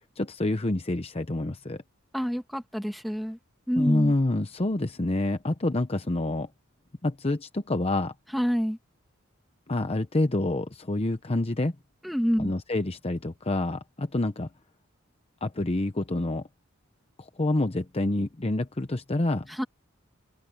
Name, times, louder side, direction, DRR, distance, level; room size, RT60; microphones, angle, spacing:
voice 1, 0.2-1.8 3.8-6.5 7.0-8.1 9.7-11.8 12.4-14.5 15.4-16.5 17.2-19.5, left 2 dB, 30° left, 0.8 m, -27 dB
voice 2, 2.1-3.4 3.7-4.1 8.3-8.8 12.0-12.5 19.5-19.6, equal, ahead, 2.0 m, -27 dB
open air
head